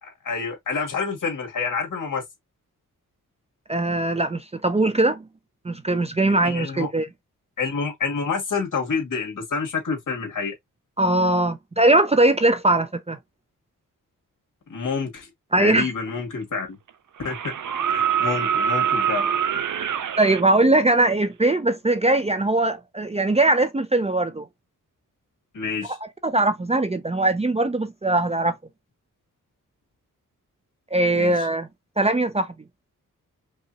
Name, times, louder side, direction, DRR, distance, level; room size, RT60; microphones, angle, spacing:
voice 1, 0.0-2.2 6.3-6.9 7.6-10.5 14.7-15.3 15.6-16.8 17.2-17.6 17.9-19.3 25.5-26.0 31.1-31.3, left 5 dB, 65° left, 2.3 m, -28 dB
voice 2, 3.7-5.3 5.6-7.1 11.0-13.2 15.5-15.9 20.2-24.5 26.2-28.5 30.9-31.7 32.0-32.5, right 2 dB, 20° right, 0.5 m, -20 dB
sound 1, 16.1-16.2 17.2-20.4 22.2-22.3, right 8 dB, 65° right, 0.7 m, -24 dB
5.4 x 2.4 x 2.9 m
wide cardioid pair, 115°, 33 cm